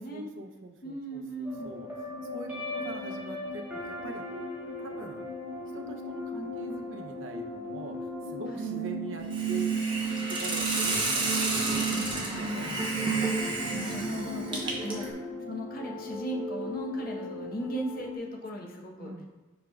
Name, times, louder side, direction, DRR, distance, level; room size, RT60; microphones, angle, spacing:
voice 1, 0.0-4.2 4.8-5.2 5.7-9.7 10.3-13.7 14.6-14.8 19.0-19.3, right 2 dB, 70° right, 4 dB, 0.6 m, -43 dB
voice 2, 0.8-1.7 8.5-8.7 12.2-13.2 13.7-15.1 15.5-19.1, right 1 dB, 45° left, -1 dB, 0.9 m, -38 dB
sound 1, 1.4-18.2, right 3 dB, 10° right, 1.2 m, -35 dB
Hiss, 9.3-15.1, right 2 dB, 25° right, 0.8 m, -31 dB
8.0 x 5.1 x 2.3 m, 1.2 s
head